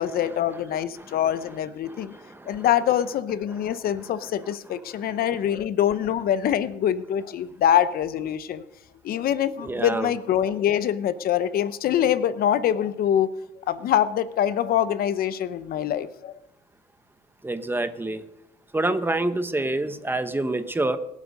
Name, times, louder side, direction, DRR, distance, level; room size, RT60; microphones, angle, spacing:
voice 1, 0.0-2.1 2.5-8.6 9.0-13.3 13.7-16.4, left 10 dB, 60° left, 14 dB, 0.8 m, -24 dB
voice 2, 9.6-10.1 17.4-18.2 18.7-21.0, right 2 dB, 10° right, 10 dB, 1.2 m, -26 dB
24.5 x 8.6 x 5.3 m, 0.85 s
cardioid pair, 110°, 17 cm